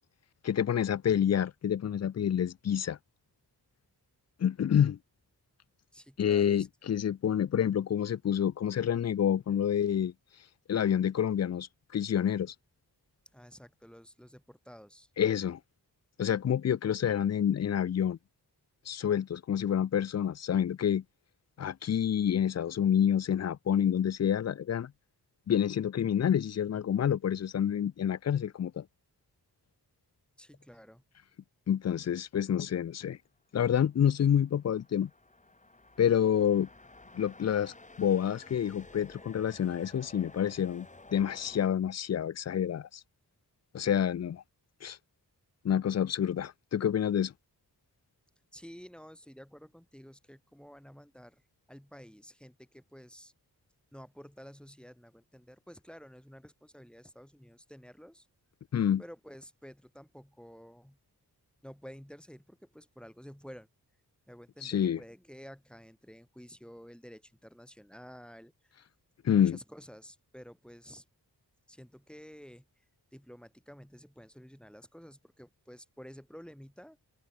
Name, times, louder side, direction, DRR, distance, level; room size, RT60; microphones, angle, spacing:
voice 1, 0.4-3.0 4.4-5.0 6.2-10.1 10.7-12.5 15.2-15.6 16.2-18.2 18.9-21.0 21.6-24.9 25.5-28.8 31.7-33.2 33.5-35.1 36.0-36.7 37.1-40.9 41.1-43.0 43.7-44.4 44.8-45.0 45.6-47.3 58.7-59.0 64.6-65.0 69.2-69.6, left 9 dB, 45° left, 0.4 m, -28 dB
voice 2, 5.9-6.7 13.3-15.1 30.4-31.0 48.5-51.4 51.7-53.3 53.9-58.3 59.0-61.0 61.6-63.7 64.3-68.8 69.3-71.0 71.7-72.7 73.1-77.0, equal, ahead, 1.9 m, -51 dB
sound 1, 33.9-41.7, left 2 dB, 20° left, 1.5 m, -53 dB
wide cardioid pair, 75°, 39 cm